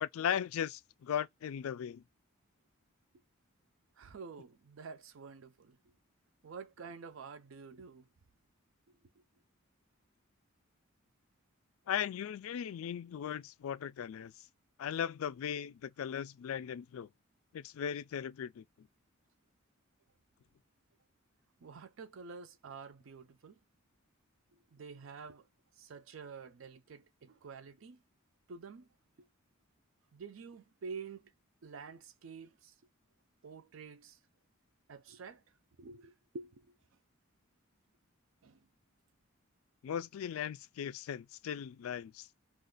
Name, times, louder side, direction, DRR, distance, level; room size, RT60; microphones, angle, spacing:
voice 1, 0.0-2.0 11.9-14.3 14.8-17.1 17.5-18.9 39.8-42.3, left 9 dB, 80° left, 0.3 m, -37 dB
voice 2, 4.0-5.8 6.4-8.1 21.6-23.6 24.7-25.5 25.8-28.0 28.5-28.9 29.2-29.3 30.1-31.3 31.6-32.7 33.4-34.2 34.9-35.4 35.8-36.7 38.4-38.6, right 5 dB, 70° right, 0.5 m, -49 dB
2.5 x 2.4 x 3.8 m
head